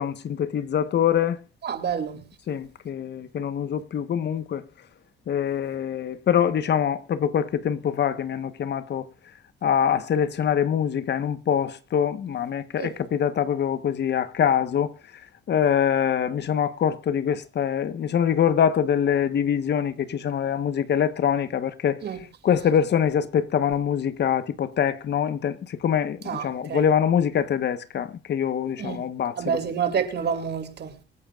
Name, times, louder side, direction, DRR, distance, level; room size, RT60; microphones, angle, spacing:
voice 1, 0.0-1.4 2.5-4.6 5.3-9.0 9.6-14.9 15.5-22.0 22.4-29.4, left 8 dB, 60° left, 1.2 m, -24 dB
voice 2, 1.6-2.3 12.8-12.9 22.0-22.2 26.2-26.9 28.8-29.0 29.4-31.0, right 7 dB, 60° right, 2.7 m, -28 dB
26.0 x 9.0 x 2.5 m
cardioid pair, 90°, 20 cm